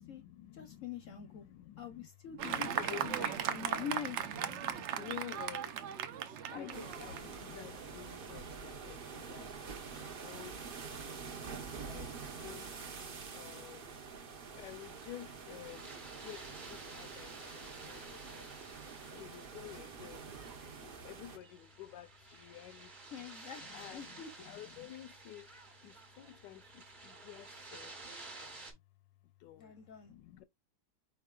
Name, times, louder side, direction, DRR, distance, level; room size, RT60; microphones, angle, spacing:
voice 1, 0.0-3.8 4.5-5.7 6.5-9.5 10.2-10.6 10.9-11.3 11.8-12.7 13.3-13.9 14.6-15.9 16.2-18.5 19.1-20.3 20.8-23.3 23.7-25.5 25.8-27.9 28.4-28.6 29.4-29.7 30.1-30.4, left 13 dB, 85° left, 1.2 m, -50 dB
voice 2, 0.5-1.5 1.8-4.2 6.5-7.0 23.1-23.6 23.9-24.3 29.6-30.1, left 8 dB, 60° left, 0.8 m, -45 dB
Fireworks, 2.4-8.1, right 9 dB, 85° right, 0.6 m, -38 dB
sound 1, 6.7-21.4, right 5 dB, 45° right, 0.7 m, -47 dB
sound 2, 14.6-28.7, right 3 dB, 30° right, 1.3 m, -53 dB
4.9 x 4.4 x 2.3 m
omnidirectional pair, 1.9 m